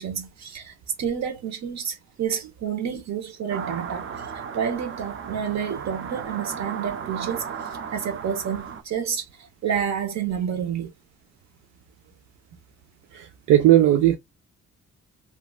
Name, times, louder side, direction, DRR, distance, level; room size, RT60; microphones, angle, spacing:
voice 1, 0.0-4.1 4.3-7.5 7.9-10.9, right 8 dB, 65° right, 1.1 m, -29 dB
sound 1, 3.5-8.8, right 7 dB, 40° right, 0.6 m, -35 dB
voice 2, 13.1-14.2, right 13 dB, 85° right, 0.5 m, -17 dB
2.9 x 2.5 x 2.4 m
cardioid pair, 90°, 30 cm